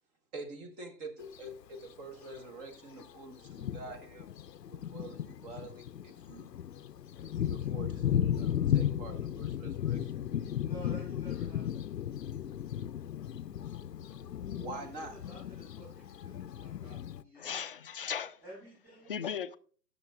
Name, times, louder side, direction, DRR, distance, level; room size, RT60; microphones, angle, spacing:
voice 1, 0.3-4.3 4.6-6.5 7.2-10.1 14.0-14.1 14.5-15.2, right 2 dB, 25° right, 1.2 m, -46 dB
Thunder, 1.2-1.4 2.3-2.4 3.0-3.1 3.5-17.2, left 10 dB, 90° left, 0.6 m, -35 dB
voice 2, 10.5-11.9 14.9-17.6 18.4-19.3, right 2 dB, 5° right, 4.6 m, -52 dB
voice 3, 17.4-18.4 19.1-19.6, left 8 dB, 40° left, 0.4 m, -37 dB
19.0 x 6.7 x 2.3 m
figure-of-eight pair, 130°, 48 cm